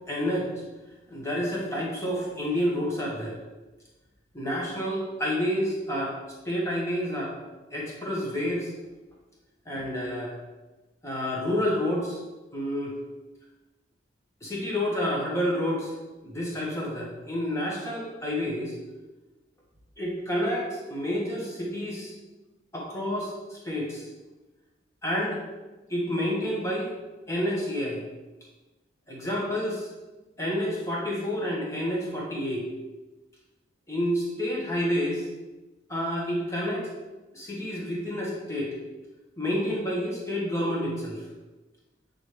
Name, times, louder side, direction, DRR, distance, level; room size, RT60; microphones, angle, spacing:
voice 1, 0.1-0.5 1.1-3.4 4.3-6.1 6.4-7.3 7.7-8.7 9.7-10.3 11.0-12.2 12.5-13.0 14.4-15.9 16.2-18.7 20.0-22.1 22.7-24.0 25.0-25.4 25.9-26.9 27.3-28.0 29.1-29.9 30.4-32.6 33.9-35.2 35.9-36.9 37.3-38.7 39.4-41.2, equal, 15° left, -4 dB, 1.4 m, -29 dB
8.3 x 4.0 x 3.3 m, 1.1 s
head